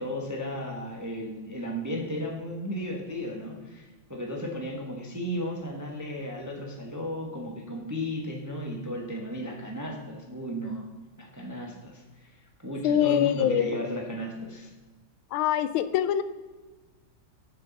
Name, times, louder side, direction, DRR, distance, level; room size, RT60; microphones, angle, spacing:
voice 1, 0.0-10.9 11.2-14.7, left 1 dB, 15° right, 0 dB, 0.7 m, -34 dB
voice 2, 12.8-13.7 15.3-16.2, left 10 dB, 80° left, 12 dB, 1.4 m, -24 dB
6.9 x 6.7 x 5.2 m, 1.3 s
omnidirectional pair, 2.2 m